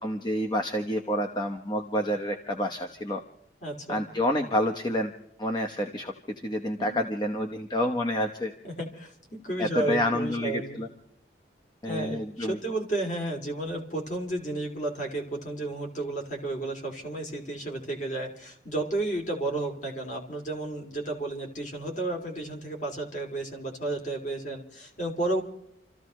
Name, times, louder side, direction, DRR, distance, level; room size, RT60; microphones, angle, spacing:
voice 1, 0.0-3.2 3.9-5.1 5.4-8.5 9.6-10.9 11.8-12.6, equal, 25° left, 2 dB, 1.0 m, -28 dB
voice 2, 3.6-4.1 6.8-7.0 8.6-10.8 11.9-25.4, right 2 dB, 40° left, 2 dB, 3.0 m, -32 dB
29.0 x 14.5 x 3.2 m, 0.72 s
head